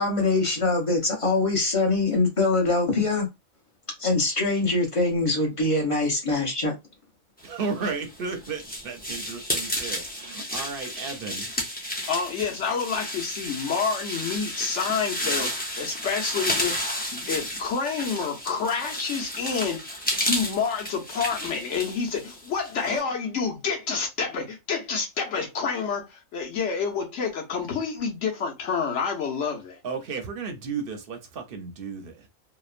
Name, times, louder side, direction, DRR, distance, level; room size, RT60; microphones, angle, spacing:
voice 1, 0.0-3.3 4.0-6.7, left 3 dB, 30° left, 0.8 m, -23 dB
voice 2, 7.4-11.5 29.8-32.3, right 5 dB, 55° right, 0.7 m, -34 dB
sound 1, 7.8-23.0, equal, 10° left, 0.4 m, -32 dB
voice 3, 12.1-16.8 17.3-29.8, left 5 dB, 60° left, 1.1 m, -28 dB
2.9 x 2.1 x 2.4 m
omnidirectional pair, 1.4 m